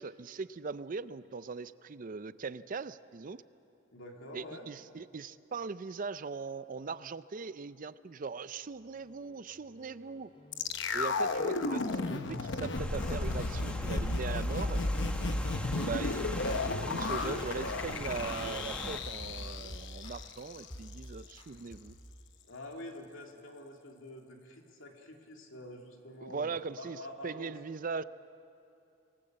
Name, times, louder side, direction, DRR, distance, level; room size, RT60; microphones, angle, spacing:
voice 1, 0.0-3.4 4.3-10.3 10.9-14.8 15.7-22.0 26.2-28.0, right 4 dB, 40° right, 15 dB, 0.5 m, -40 dB
voice 2, 3.9-4.7 22.5-27.6, left 1 dB, 75° left, 1 dB, 2.9 m, -47 dB
sound 1, 8.6-18.4 18.7-20.4 20.7-21.1 21.4-22.1, equal, 30° left, 3.0 m, -52 dB
sound 2, 10.5-20.7 20.9-21.0, left 2 dB, 60° left, 1.0 m, -34 dB
Rain, 12.7-19.0, equal, 5° left, 1.2 m, -41 dB
26.0 x 19.5 x 7.6 m, 2.6 s
head